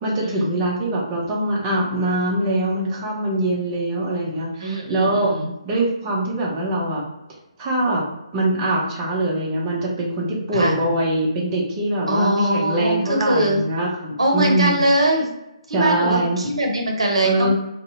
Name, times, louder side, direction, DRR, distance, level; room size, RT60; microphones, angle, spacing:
voice 1, 0.0-5.4 5.6-7.0 7.6-8.0 8.3-14.8 15.7-16.4 17.2-17.5, right 1 dB, 20° right, -4 dB, 0.5 m, -23 dB
voice 2, 4.6-5.5 10.5-10.8 12.1-13.6 14.2-15.3 15.7-17.5, right 1 dB, 70° right, 1 dB, 0.6 m, -21 dB
2.6 x 2.1 x 2.5 m, 0.91 s
figure-of-eight pair, 140°, 3 cm